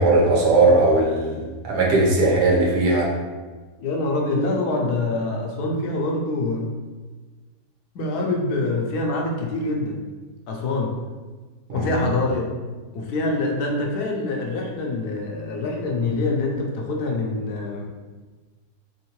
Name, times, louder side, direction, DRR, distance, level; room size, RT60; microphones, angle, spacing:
voice 1, 0.0-3.1 11.7-11.9, right 2 dB, 80° right, -3 dB, 1.5 m, -18 dB
voice 2, 3.8-6.7 7.9-10.0 10.5-11.0 11.7-12.5 12.9-17.9, left 2 dB, 75° left, 0 dB, 1.1 m, -25 dB
3.8 x 3.6 x 2.9 m, 1.3 s
omnidirectional pair, 1.7 m